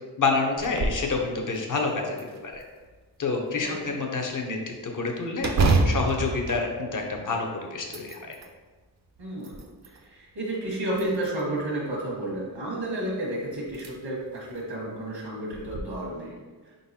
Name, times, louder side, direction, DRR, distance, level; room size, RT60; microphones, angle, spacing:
voice 1, 0.2-2.6 3.2-5.5 5.8-8.3, left 4 dB, 50° left, 2 dB, 0.7 m, -28 dB
sound 1, 0.6-1.1 1.5-1.6 2.2-3.0 5.4-7.4 7.8-8.5 9.2-10.0 10.9-11.6 13.0-13.1 13.7-13.9 14.4-14.5 15.5-15.8, right 3 dB, 45° right, 0.4 m, -27 dB
voice 2, 3.6-3.9 9.2-9.6 10.0-16.3, right 1 dB, 85° right, -5 dB, 1.4 m, -31 dB
4.6 x 3.9 x 2.8 m, 1.4 s
wide cardioid pair, 135°, 42 cm